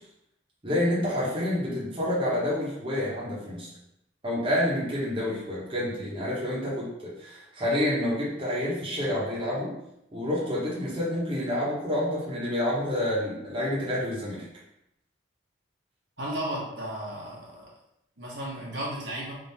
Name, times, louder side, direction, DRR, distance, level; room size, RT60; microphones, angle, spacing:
voice 1, 0.6-3.7 4.2-9.7 10.1-14.4, left 1 dB, 25° right, -8 dB, 1.2 m, -28 dB
voice 2, 16.2-17.6 18.2-19.4, right 1 dB, 70° right, -5 dB, 1.2 m, -34 dB
3.6 x 2.9 x 4.2 m, 0.83 s
head